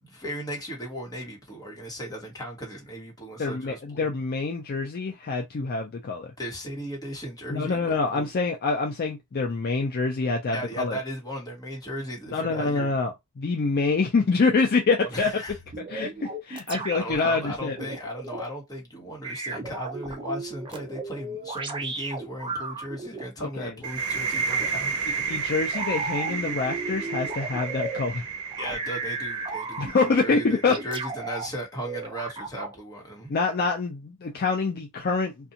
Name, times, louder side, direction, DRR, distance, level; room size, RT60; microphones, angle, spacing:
voice 1, 0.0-4.1 6.4-8.3 10.5-13.0 15.1-15.6 16.9-25.0 28.6-33.3, equal, 20° left, 1.2 m, -36 dB
voice 2, 3.4-6.3 7.5-11.0 12.3-13.1 13.4-15.4 15.9-17.8 23.4-23.7 25.3-28.2 29.8-30.8 33.3-35.3, left 4 dB, 45° left, 0.4 m, -26 dB
sound 1, 15.5-18.4 19.2-23.2 24.5-24.7 25.7-28.0 28.5-30.2 30.7-31.5 31.8-32.7, right 3 dB, 20° right, 0.5 m, -35 dB
sound 2, 23.8-31.4, right 5 dB, 75° right, 0.7 m, -32 dB
2.5 x 2.3 x 2.7 m
head